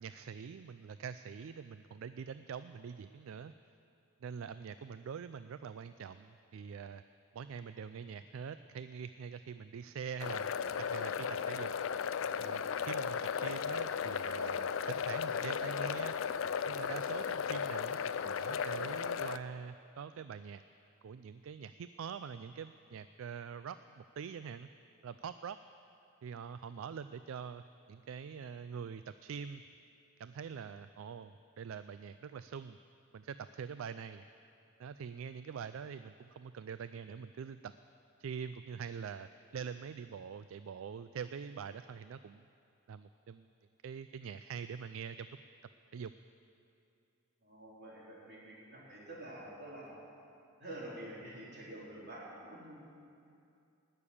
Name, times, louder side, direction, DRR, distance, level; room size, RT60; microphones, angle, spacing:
voice 1, 0.0-3.5 4.2-7.0 7.3-10.5 10.8-11.7 12.4-16.1 16.7-20.6 21.0-24.7 25.0-25.6 26.2-29.6 30.2-32.8 33.1-34.2 34.8-37.7 38.2-42.5 42.9-43.4 43.8-45.4 45.9-46.1, right 6 dB, 70° right, 12 dB, 0.3 m, -44 dB
sound 1, 10.2-19.4, left 7 dB, 65° left, 0.4 m, -35 dB
voice 2, 47.4-50.0 50.6-52.8, right 1 dB, 50° right, -5 dB, 4.0 m, -48 dB
19.0 x 6.8 x 8.5 m, 2.6 s
head